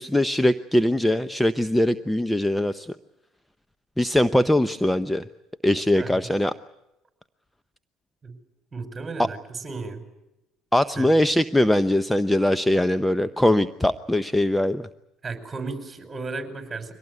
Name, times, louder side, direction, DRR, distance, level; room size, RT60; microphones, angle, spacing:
voice 1, 0.0-2.9 4.0-5.2 5.6-6.5 9.2-9.3 10.7-14.9, left 1 dB, 5° left, 13 dB, 0.8 m, -21 dB
voice 2, 5.9-6.3 8.2-8.4 8.7-10.0 11.0-11.1 15.2-16.9, right 4 dB, 25° right, 7 dB, 5.3 m, -34 dB
23.5 x 18.5 x 9.6 m, 0.92 s
supercardioid pair, 75°, 0 cm